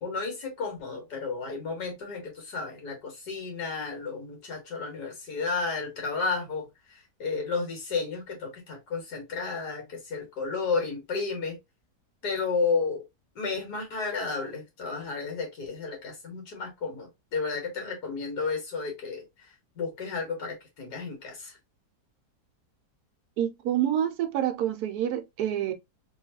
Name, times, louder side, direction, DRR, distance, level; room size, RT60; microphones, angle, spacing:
voice 1, 0.0-11.6 12.2-13.0 13.4-21.6, left 4 dB, 70° left, 1.9 m, -32 dB
voice 2, 23.4-25.7, right 10 dB, 70° right, 1.1 m, -27 dB
3.1 x 3.0 x 2.8 m
omnidirectional pair, 1.8 m